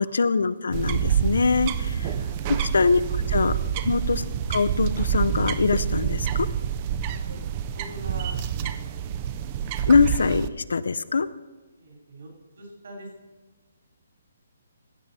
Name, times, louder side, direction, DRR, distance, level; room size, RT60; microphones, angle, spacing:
voice 1, 0.0-2.1 2.7-3.0 3.3-3.5 3.8-4.2 4.5-6.5 9.9-11.3, left 4 dB, 75° left, 14 dB, 0.5 m, -22 dB
sound 1, 0.7-10.5, right 9 dB, 20° right, 0.3 m, -27 dB
voice 2, 2.2-2.5 3.4-3.7 7.1-7.4 7.7-8.7 11.8-12.3 12.5-13.1, right 1 dB, 60° right, 0 dB, 3.3 m, -42 dB
15.5 x 7.4 x 4.1 m, 1.2 s
hypercardioid pair, 180°, 0 cm